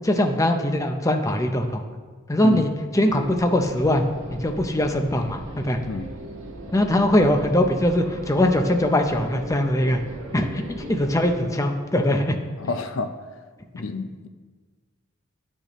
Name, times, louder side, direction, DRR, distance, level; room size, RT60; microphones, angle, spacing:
voice 1, 0.0-1.8 2.3-4.1 4.3-5.8 6.7-10.0 10.3-12.4, left 1 dB, 15° left, 4 dB, 0.6 m, -21 dB
sound 1, 3.1-11.5, right 1 dB, 80° right, 1.3 m, -38 dB
voice 2, 12.6-13.1 13.7-14.3, left 3 dB, 70° left, 9 dB, 0.5 m, -29 dB
11.5 x 6.6 x 3.0 m, 1.4 s
head